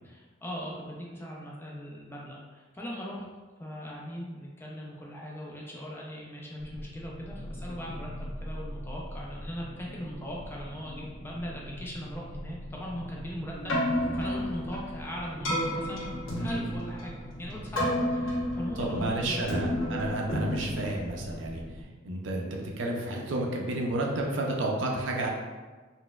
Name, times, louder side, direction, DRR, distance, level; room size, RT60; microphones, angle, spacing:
voice 1, 0.0-3.2 3.6-16.1 16.4-17.1 17.4-19.5, equal, 10° left, -3 dB, 0.4 m, -39 dB
sound 1, 6.6-21.8, left 1 dB, 25° right, 0.7 m, -43 dB
Keyboard (musical), 13.5-21.7, equal, 85° left, 1.1 m, -31 dB
voice 2, 18.8-21.6 22.0-25.3, right 1 dB, 75° right, 0 dB, 0.5 m, -31 dB
4.1 x 2.1 x 2.3 m, 1.3 s
head